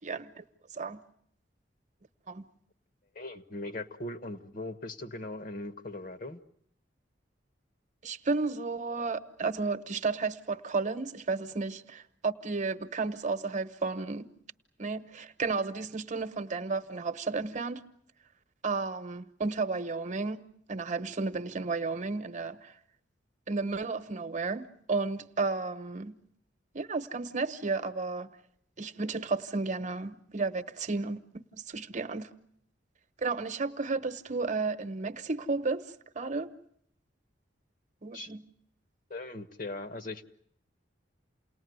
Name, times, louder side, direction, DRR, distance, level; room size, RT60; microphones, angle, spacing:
voice 1, 0.0-0.4 0.7-1.0 2.3-2.4 8.0-14.3 14.8-17.8 18.6-20.4 20.7-22.7 23.5-26.1 26.7-28.3 28.8-31.2 31.5-32.3 33.2-36.5 38.0-38.4, right 4 dB, 40° right, 1.0 m, -33 dB
voice 2, 3.1-6.4 38.1-38.3 39.1-40.2, left 2 dB, 50° left, 1.4 m, -39 dB
28.5 x 19.5 x 9.5 m
head